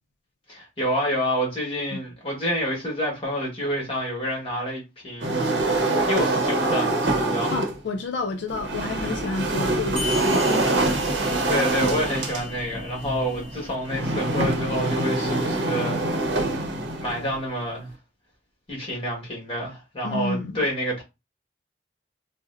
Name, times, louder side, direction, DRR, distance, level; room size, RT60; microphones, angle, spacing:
voice 1, 0.5-7.6 11.5-16.0 17.0-17.9 18.7-21.0, equal, 30° left, 1.2 m, -28 dB
sound 1, 5.2-7.8 8.5-17.3, right 2 dB, 75° right, 0.7 m, -25 dB
voice 2, 7.5-11.0 20.0-20.7, left 3 dB, 70° left, 0.4 m, -30 dB
sound 2, 10.0-15.0, left 3 dB, 5° left, 0.5 m, -39 dB
3.7 x 2.0 x 2.5 m
head